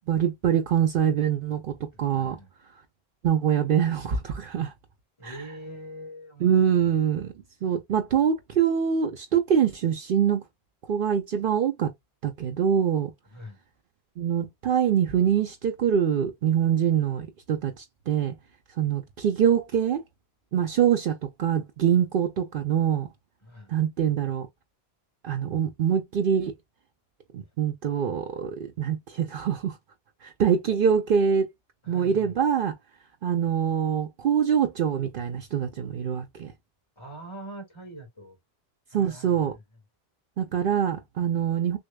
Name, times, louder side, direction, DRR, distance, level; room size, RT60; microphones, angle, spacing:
voice 1, 0.1-2.4 3.2-4.7 5.2-5.4 6.4-7.3 7.6-10.4 10.9-11.9 12.2-13.1 14.2-18.3 18.8-20.0 20.5-23.1 23.7-24.5 25.2-26.5 27.3-29.8 30.2-31.5 31.9-32.7 33.2-36.5 38.9-39.5 40.4-41.8, right 8 dB, 65° right, 0.7 m, -24 dB
voice 2, 1.9-2.5 5.2-6.9 13.3-13.6 23.4-23.7 31.8-32.3 37.0-38.4 38.9-39.6, right 1 dB, 25° left, 1.8 m, -43 dB
6.2 x 2.3 x 2.2 m
omnidirectional pair, 1.1 m